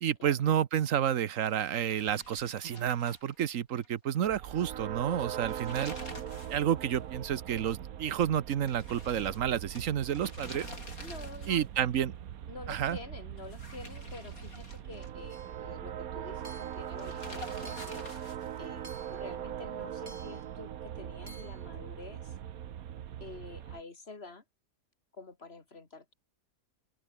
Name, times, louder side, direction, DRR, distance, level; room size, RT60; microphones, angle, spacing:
voice 1, 0.0-5.9 6.5-10.7 11.5-12.1 12.7-13.0, right 9 dB, 65° right, 1.3 m, -30 dB
sound 1, 1.4-3.9 4.2-4.3 5.3-6.7 7.0-7.1 8.7-11.8 13.4-15.4 16.9-18.6, left 2 dB, 80° left, 7.2 m, -48 dB
sound 2, 4.3-23.8, right 10 dB, 90° right, 1.4 m, -41 dB
voice 2, 11.0-11.7 12.5-22.3 23.2-24.4 25.1-26.1, left 3 dB, 45° left, 3.0 m, -48 dB
Hammer / Chink clink, 15.3-15.6 16.4-16.9 17.6-18.1 18.8-19.3 20.1-20.5 21.3-21.6, right 1 dB, 25° right, 4.6 m, -52 dB
open air
omnidirectional pair, 1.5 m